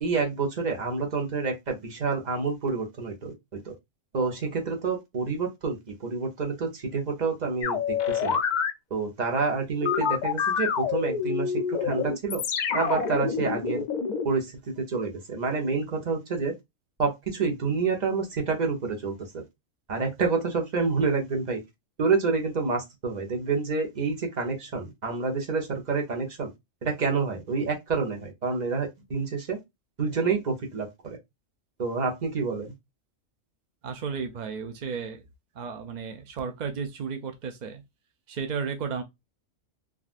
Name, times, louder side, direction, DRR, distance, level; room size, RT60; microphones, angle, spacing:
voice 1, 0.0-3.7 4.1-8.4 8.9-12.4 12.7-13.8 14.2-16.5 17.0-19.2 19.9-21.6 22.0-26.5 26.8-29.6 30.0-31.2 31.8-32.7, right 4 dB, 40° right, 0.9 m, -28 dB
sound 1, 7.6-8.7 9.8-14.2, left 6 dB, 85° left, 0.4 m, -27 dB
voice 2, 33.8-35.2 35.5-37.8 38.3-39.0, right 6 dB, 65° right, 0.4 m, -33 dB
3.6 x 2.4 x 2.4 m
omnidirectional pair, 1.3 m